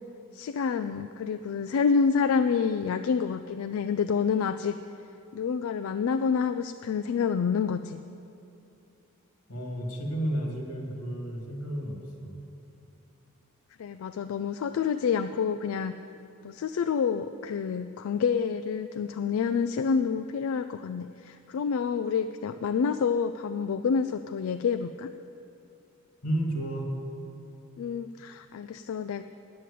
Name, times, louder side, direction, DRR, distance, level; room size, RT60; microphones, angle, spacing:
voice 1, 0.3-4.8 5.3-8.0 13.8-15.9 16.4-25.1 27.8-29.2, left 6 dB, 65° left, 10 dB, 0.3 m, -28 dB
voice 2, 9.5-12.3 26.2-26.9, right 1 dB, 85° left, 0 dB, 2.1 m, -32 dB
9.1 x 7.6 x 8.3 m, 2.7 s
head